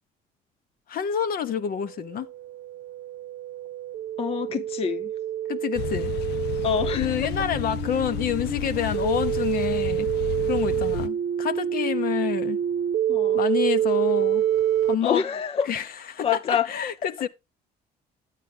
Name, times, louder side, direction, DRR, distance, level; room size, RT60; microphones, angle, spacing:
voice 1, 0.9-2.3 5.5-6.1 7.0-10.1 10.5-12.6 13.3-14.4 14.8-15.2 15.7-17.3, left 8 dB, 60° left, 0.9 m, -28 dB
sound 1, 1.7-14.9, right 10 dB, 70° right, 0.7 m, -27 dB
voice 2, 4.2-5.1 6.6-7.3 13.1-13.4 15.0-15.7 16.2-16.7, left 8 dB, 35° left, 0.5 m, -26 dB
sound 2, 5.7-11.1, left 12 dB, 85° left, 0.5 m, -32 dB
9.2 x 9.2 x 3.5 m
cardioid pair, 110°, 17 cm